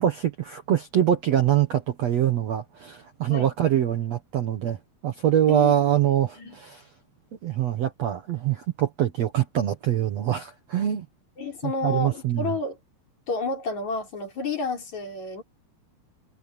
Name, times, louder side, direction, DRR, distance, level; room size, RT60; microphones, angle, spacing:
voice 1, 0.0-4.8 5.0-6.8 7.4-11.1 11.6-12.5, right 11 dB, 60° right, 1.9 m, -24 dB
voice 2, 11.4-12.8 13.3-15.4, left 3 dB, 50° left, 5.6 m, -30 dB
omnidirectional pair, 4.4 m